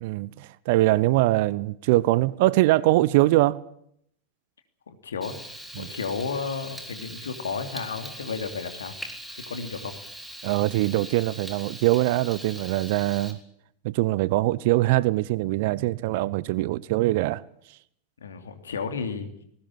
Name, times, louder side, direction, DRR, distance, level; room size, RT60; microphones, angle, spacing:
voice 1, 0.0-3.6 5.8-5.9 10.4-13.4 13.8-17.4, right 18 dB, 55° right, 0.8 m, -22 dB
voice 2, 4.9-5.4 5.8-8.9 9.3-10.0 18.2-19.3, left 5 dB, 75° left, 3.0 m, -32 dB
Frying (food), 5.2-13.3, equal, ahead, 3.9 m, -41 dB
20.5 x 18.0 x 8.8 m
figure-of-eight pair, 90°, 0 cm